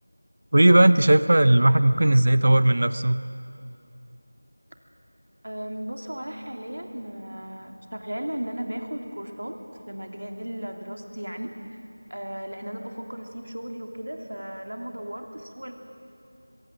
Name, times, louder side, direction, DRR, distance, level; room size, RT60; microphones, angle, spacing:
voice 1, 0.5-3.2, right 1 dB, 35° right, 14 dB, 0.6 m, -17 dB
voice 2, 5.4-9.6 9.9-11.5 12.1-15.7, equal, 70° right, 4 dB, 3.0 m, -35 dB
23.0 x 23.0 x 7.7 m, 2.6 s
figure-of-eight pair, 180°, 0 cm